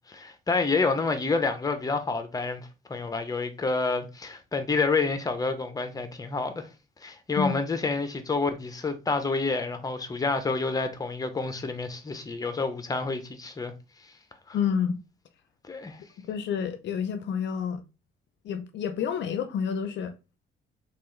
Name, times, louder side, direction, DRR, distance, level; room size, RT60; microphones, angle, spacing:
voice 1, 0.1-6.7 7.0-13.7 14.5-14.6 15.7-16.0, left 3 dB, 20° left, 0.7 m, -28 dB
voice 2, 14.5-15.0 16.3-17.8 18.4-20.1, left 7 dB, 65° left, 0.5 m, -29 dB
3.3 x 2.4 x 3.2 m
cardioid pair, 90°, 20 cm